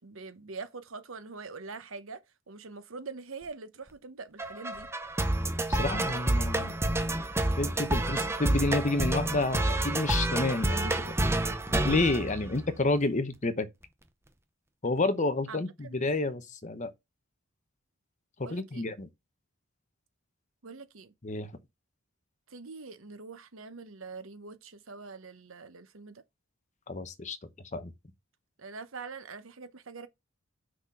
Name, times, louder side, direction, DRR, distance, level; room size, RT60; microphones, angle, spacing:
voice 1, 0.0-4.9 15.5-15.9 18.4-18.8 20.6-21.1 22.5-26.2 28.6-30.1, right 4 dB, 75° right, 1.0 m, -44 dB
sound 1, 4.4-13.0, right 1 dB, 10° right, 0.7 m, -29 dB
voice 2, 5.7-6.8 7.6-11.1 11.7-13.7 14.8-16.9 18.4-19.1 21.2-21.5 26.9-27.4 27.7-27.9, left 2 dB, 35° left, 0.9 m, -30 dB
6.2 x 4.1 x 6.1 m
head